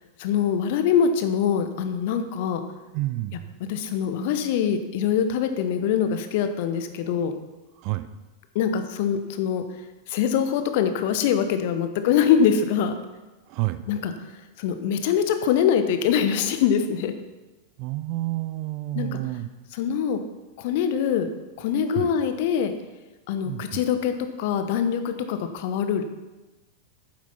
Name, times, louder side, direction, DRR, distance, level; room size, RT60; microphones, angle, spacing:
voice 1, 0.2-2.6 3.7-7.3 8.5-9.6 10.1-13.0 13.9-14.1 14.6-17.1 18.9-19.1 19.7-20.2 20.6-21.3 21.6-22.7 23.3-26.0, left 8 dB, 50° left, 8 dB, 1.0 m, -23 dB
voice 2, 2.9-3.5 7.8-8.1 13.5-13.8 17.8-19.5 21.9-22.1 23.4-23.8, right 18 dB, 45° right, 12 dB, 0.6 m, -29 dB
9.5 x 7.4 x 5.8 m, 1.1 s
figure-of-eight pair, 90°, 0 cm